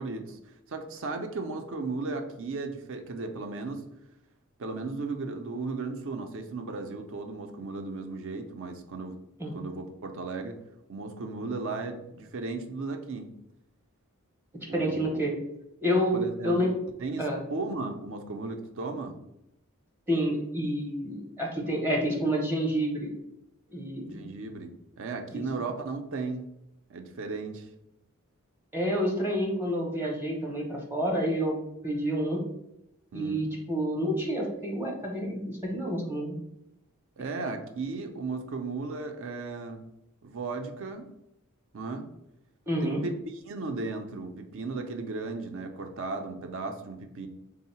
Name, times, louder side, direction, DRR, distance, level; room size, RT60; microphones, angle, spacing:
voice 1, 0.0-3.8 4.6-9.2 9.5-10.6 10.9-13.3 14.7-15.2 16.1-16.7 17.0-19.2 24.1-26.5 26.9-27.7 33.1-33.5 37.2-39.9 40.2-41.1 41.7-42.1 42.8-47.3, right 3 dB, 60° right, 5 dB, 0.5 m, -35 dB
voice 2, 14.7-15.4 15.8-16.7 17.2-17.4 20.1-23.1 23.7-24.3 25.3-25.4 28.7-31.6 31.8-32.5 33.1-36.4 42.7-43.0, equal, 10° right, -1 dB, 0.6 m, -29 dB
3.7 x 2.0 x 4.1 m, 0.84 s
head